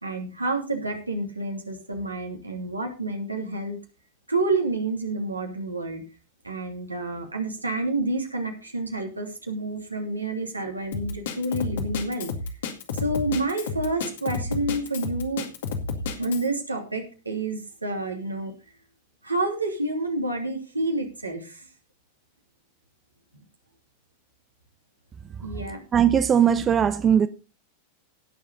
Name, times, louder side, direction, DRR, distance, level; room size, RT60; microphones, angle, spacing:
voice 1, 0.0-3.8 4.3-6.0 6.4-12.3 12.9-15.5 16.2-18.5 19.2-21.7 25.4-25.9, right 2 dB, 85° right, 3.0 m, -29 dB
Drum kit, 10.9-16.5, left 4 dB, 60° left, 2.2 m, -31 dB
voice 2, 25.9-27.3, right 8 dB, 25° right, 0.8 m, -19 dB
17.5 x 7.2 x 4.1 m
figure-of-eight pair, 90°, 0 cm